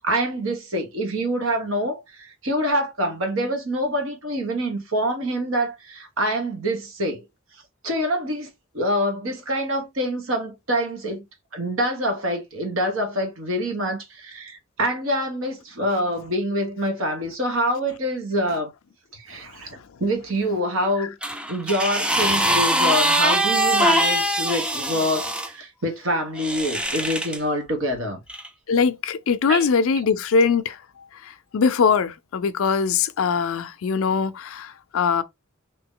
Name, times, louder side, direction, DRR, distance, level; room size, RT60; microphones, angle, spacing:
voice 1, 0.0-7.2 7.8-11.2 11.5-18.7 19.1-21.1 21.5-28.2 29.5-29.6, equal, 70° right, 1.2 m, -26 dB
sound 1, 21.2-25.5 26.4-27.4 28.3-28.5, right 1 dB, 5° right, 0.4 m, -22 dB
voice 2, 28.7-35.2, left 5 dB, 75° left, 0.4 m, -22 dB
3.0 x 2.7 x 3.6 m
head